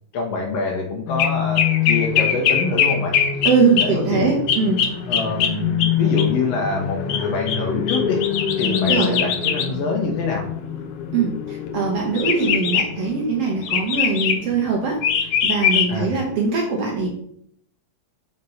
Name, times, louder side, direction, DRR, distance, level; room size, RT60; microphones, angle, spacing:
voice 1, 0.1-3.2 3.8-4.4 5.1-8.2 8.6-10.4 15.9-16.1, left 3 dB, 70° left, 0 dB, 1.7 m, -25 dB
sound 1, 1.1-16.5, left 8 dB, 85° left, 1.2 m, -22 dB
voice 2, 3.4-4.8 8.9-9.1 11.1-15.0 15.4-17.1, right 4 dB, 65° right, 0 dB, 1.7 m, -21 dB
5.3 x 3.4 x 5.5 m, 0.67 s
omnidirectional pair, 3.3 m